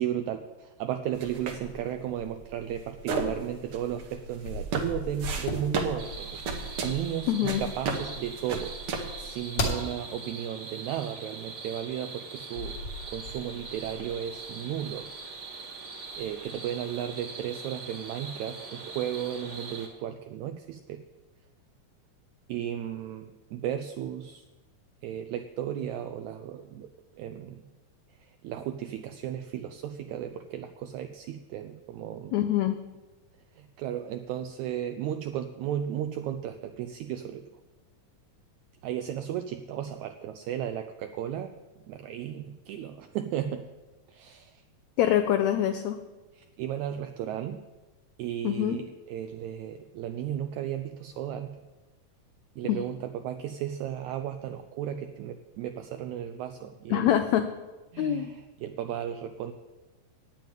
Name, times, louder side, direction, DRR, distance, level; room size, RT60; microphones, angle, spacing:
voice 1, 0.0-8.7 9.2-12.7 13.1-15.1 16.2-21.0 22.5-24.4 25.0-27.6 28.2-32.3 33.5-37.4 38.8-41.5 41.9-43.6 44.1-44.6 46.3-47.6 48.2-51.6 52.6-57.1 57.9-59.5, right 10 dB, 85° right, 8 dB, 1.6 m, -34 dB
sound 1, 1.1-9.4, right 4 dB, 60° right, 1.5 m, -35 dB
sound 2, 4.2-6.5 9.6-9.9 12.5-15.4 16.0-16.5, left 2 dB, 50° left, 2.5 m, -36 dB
sound 3, 6.0-19.9, right 4 dB, 45° right, 1.8 m, -42 dB
voice 2, 7.3-7.6 32.3-32.8 45.0-46.0 48.4-48.8 52.7-52.8 56.9-57.5 58.0-58.3, left 11 dB, 85° left, 8 dB, 1.6 m, -25 dB
9.2 x 7.3 x 9.1 m, 1.2 s
omnidirectional pair, 3.8 m